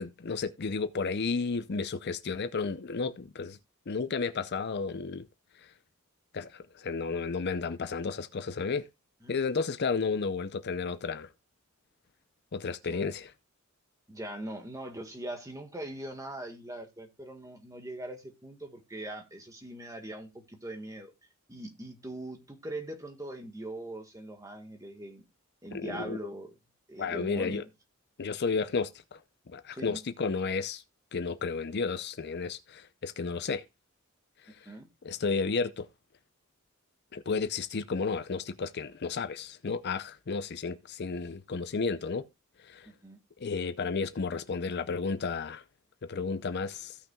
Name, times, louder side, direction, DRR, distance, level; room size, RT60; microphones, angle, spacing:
voice 1, 0.0-3.6 3.9-5.3 6.3-8.9 9.3-11.3 12.5-13.3 25.7-26.2 27.0-27.6 28.2-29.2 29.5-30.8 31.1-33.6 34.6-34.7 35.0-35.9 37.1-42.2 42.6-42.9 43.4-45.6 46.1-47.0, left 4 dB, 55° left, 0.6 m, -32 dB
voice 2, 14.1-21.1 21.5-25.2 25.6-26.5 26.9-27.7 29.7-30.0 34.6-34.9 42.8-43.2, right 1 dB, 15° right, 1.6 m, -41 dB
16.0 x 6.0 x 2.3 m
head